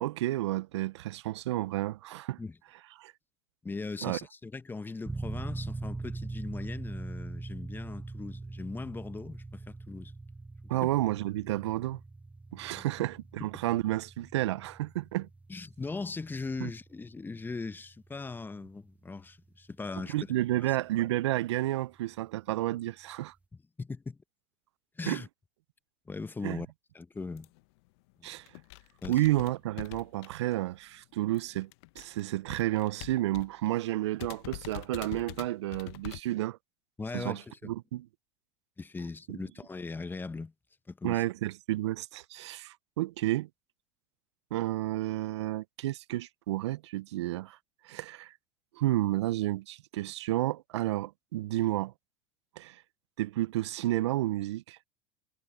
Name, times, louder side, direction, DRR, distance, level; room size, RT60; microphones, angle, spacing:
voice 1, 0.0-2.4 3.0-3.1 4.0-4.2 10.7-12.0 12.5-15.3 16.6-16.7 20.1-23.3 25.1-25.2 26.4-26.6 28.2-28.5 29.1-31.7 32.0-36.6 37.1-38.1 39.3-39.4 41.0-43.5 44.5-47.6 47.8-48.3 48.8-51.9 52.6-52.8 53.2-54.8, right 16 dB, 80° right, 0.5 m, -31 dB
voice 2, 3.6-10.1 10.8-10.9 12.8-12.9 13.4-13.5 15.5-20.1 20.7-20.8 23.8-24.2 25.0-25.3 26.1-26.7 26.9-27.5 28.2-28.3 29.0-29.1 37.0-37.7 38.8-40.5 40.9-41.2, left 3 dB, 15° left, 0.9 m, -39 dB
sound 1, 5.1-19.5, right 3 dB, 10° right, 0.9 m, -42 dB
sound 2, 27.4-27.6 28.1-28.2 28.4-30.7 31.0-33.7 33.9-34.0 34.2-36.2, left 22 dB, 70° left, 0.8 m, -44 dB
hypercardioid pair, 90°, 14 cm